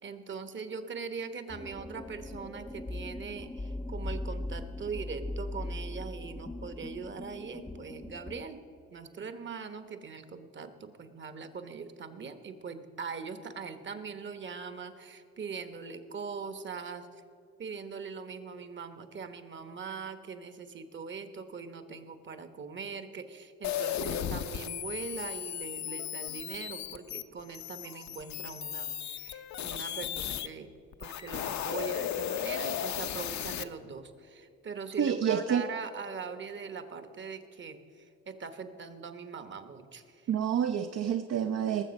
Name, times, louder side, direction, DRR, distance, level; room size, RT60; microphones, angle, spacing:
voice 1, 0.0-8.6 8.9-17.1 17.6-30.7 31.0-40.3, right 5 dB, 40° right, 10 dB, 1.1 m, -41 dB
sound 1, 1.5-8.5, left 1 dB, 5° left, 0.4 m, -39 dB
sound 2, 23.6-30.5 30.9-33.6, left 10 dB, 65° left, 0.7 m, -35 dB
voice 2, 35.0-35.7 40.3-41.8, right 8 dB, 60° right, 8 dB, 0.6 m, -28 dB
19.0 x 7.2 x 5.3 m, 2.5 s
cardioid pair, 90°, 30 cm